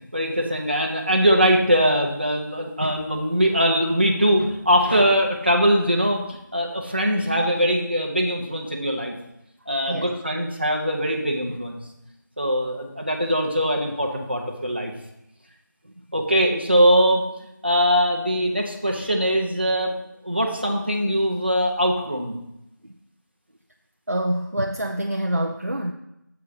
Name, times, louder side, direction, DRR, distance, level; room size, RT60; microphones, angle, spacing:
voice 1, 0.1-9.1 9.7-11.8 12.4-14.9 16.1-17.2 17.6-20.0 20.2-22.4, equal, 30° right, 1 dB, 0.8 m, -21 dB
voice 2, 24.1-25.9, right 1 dB, 45° right, 3 dB, 0.5 m, -26 dB
7.0 x 4.6 x 4.8 m, 0.86 s
figure-of-eight pair, 180°, 11 cm